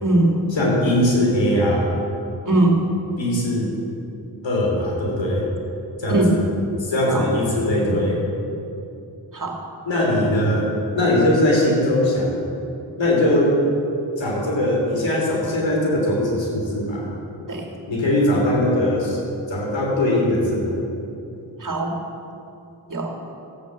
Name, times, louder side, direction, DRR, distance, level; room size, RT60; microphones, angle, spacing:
voice 1, 0.0-0.3 2.5-2.8 6.1-6.3 7.1-7.2 9.3-9.6 17.5-17.7 21.6-21.9 22.9-23.2, right 2 dB, 45° right, 2 dB, 2.4 m, -20 dB
voice 2, 0.5-1.9 3.2-3.7 4.4-5.5 6.0-6.5 6.8-8.2 9.9-12.5 13.0-13.6 14.2-17.1 17.9-19.2 19.5-20.8, left 1 dB, 80° left, -2 dB, 3.5 m, -20 dB
14.0 x 8.2 x 8.0 m, 2.7 s
cardioid pair, 45°, 44 cm